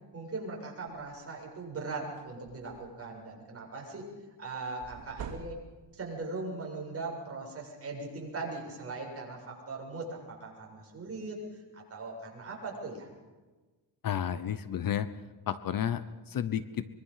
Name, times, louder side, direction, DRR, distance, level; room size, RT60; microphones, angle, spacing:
voice 1, 0.1-4.1 4.4-5.6 5.9-13.1, right 3 dB, 35° right, -1 dB, 7.5 m, -40 dB
sound 1, 0.9-1.1 1.6-1.7 2.0-3.1 4.8-6.0, right 6 dB, 85° right, 2.9 m, -45 dB
voice 2, 14.0-15.1 15.5-16.9, left 9 dB, 50° left, 13 dB, 1.0 m, -32 dB
24.5 x 23.0 x 5.8 m, 1.2 s
cardioid pair, 150°, 42 cm